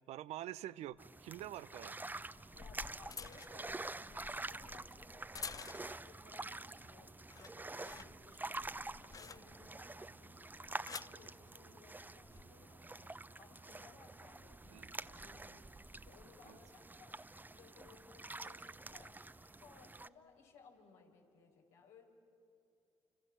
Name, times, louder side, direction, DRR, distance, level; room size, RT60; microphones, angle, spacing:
voice 1, 0.1-1.9 14.7-14.9 16.5-16.6, right 13 dB, 70° right, 16 dB, 0.7 m, -46 dB
sound 1, 0.9-1.0 2.2-6.1 6.6-6.9 7.2-9.8 10.5-11.2 12.1-12.4, left 5 dB, 30° left, 0.6 m, -51 dB
sound 2, 1.0-20.1, right 2 dB, 15° right, 0.9 m, -48 dB
voice 2, 2.5-15.8 16.0-17.2 17.5-19.2 19.5-22.1, left 4 dB, 80° left, 0 dB, 5.0 m, -62 dB
29.5 x 26.0 x 7.3 m, 2.8 s
hypercardioid pair, 55°, 12 cm